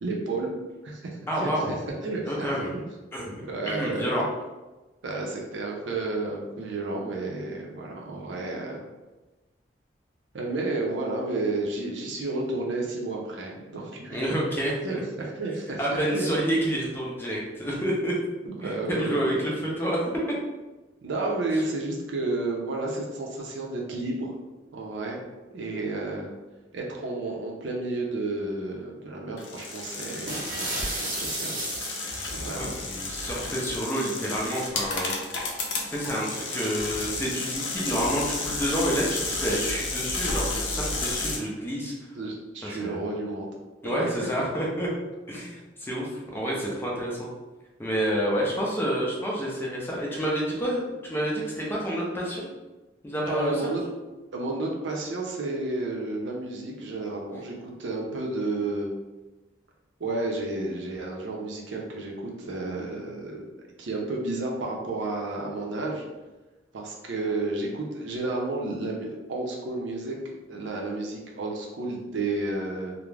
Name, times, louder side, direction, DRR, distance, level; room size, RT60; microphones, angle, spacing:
voice 1, 0.0-0.5 0.8-1.6 2.0-2.8 3.4-4.2 5.0-8.8 10.3-14.2 14.8-15.8 16.1-16.3 18.5-19.4 21.0-24.3 24.7-25.2 25.5-26.3 26.7-31.6 32.3-32.8 42.1-43.5 43.9-44.1 53.3-53.8 54.3-57.5 57.8-58.9 60.0-63.5 63.8-66.0 66.7-70.2 70.5-73.0, right 2 dB, 75° right, -1 dB, 0.5 m, -31 dB
voice 2, 1.3-1.8 2.3-2.7 3.1-3.3 3.7-4.2 14.1-14.7 15.8-18.1 18.6-20.0 32.6-35.1 35.9-41.9 42.6-43.0 43.8-44.9 45.3-47.3 47.8-52.5 53.0-53.7, equal, 10° left, -4 dB, 0.4 m, -29 dB
sound 1, 29.4-41.4, left 3 dB, 75° left, 0.5 m, -32 dB
sound 2, 30.3-32.4, right 2 dB, 45° right, 0.8 m, -33 dB
2.3 x 2.0 x 3.2 m, 1.1 s
head